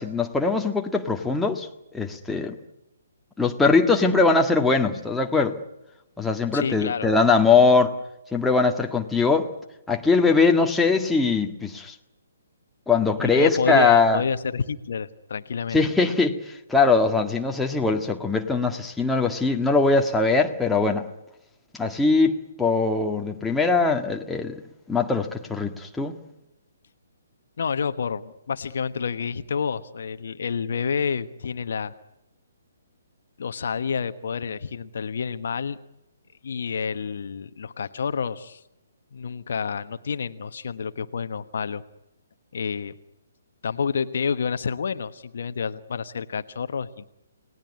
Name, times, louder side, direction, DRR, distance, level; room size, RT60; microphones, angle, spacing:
voice 1, 0.0-1.7 1.9-2.6 3.4-5.6 6.2-8.0 8.3-9.5 9.9-11.9 12.9-14.2 15.7-21.1 21.7-24.6 24.9-26.2, left 4 dB, 5° left, 2 dB, 1.8 m, -21 dB
voice 2, 6.5-7.1 13.2-15.8 27.6-31.9 33.4-35.8 36.4-38.6 39.1-41.8 42.5-42.9 43.6-47.1, left 6 dB, 55° left, 10 dB, 1.2 m, -29 dB
30.0 x 19.0 x 9.8 m, 0.93 s
figure-of-eight pair, 130°, 0 cm